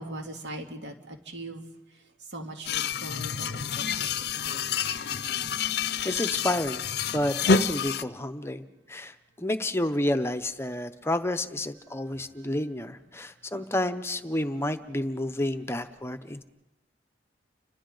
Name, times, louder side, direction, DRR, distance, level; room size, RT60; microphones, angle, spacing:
voice 1, 0.0-1.6 2.3-3.9 4.4-4.6 13.5-13.6, right 1 dB, 70° right, 3 dB, 2.5 m, -40 dB
sound 1, 2.7-8.0, left 5 dB, 55° left, 0.6 m, -28 dB
voice 2, 6.0-6.8 7.1-16.4, left 1 dB, 15° left, 10 dB, 0.7 m, -30 dB
30.0 x 26.0 x 3.9 m, 1.1 s
head